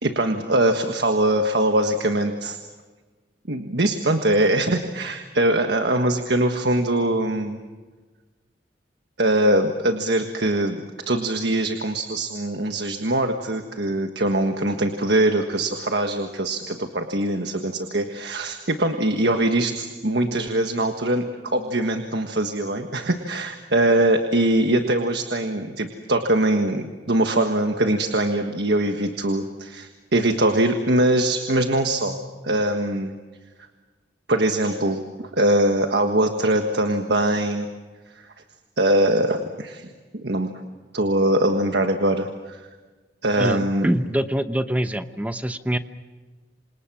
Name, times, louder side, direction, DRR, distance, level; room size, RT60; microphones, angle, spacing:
voice 1, 0.0-2.6 3.5-7.6 9.2-10.8 11.1-21.3 21.5-32.2 32.4-33.1 34.3-37.7 38.8-40.5 40.9-42.6 43.2-43.9, right 1 dB, 65° right, 5 dB, 1.5 m, -22 dB
voice 2, 43.4-45.8, equal, 10° right, 10 dB, 0.9 m, -24 dB
28.0 x 27.0 x 6.2 m, 1.3 s
head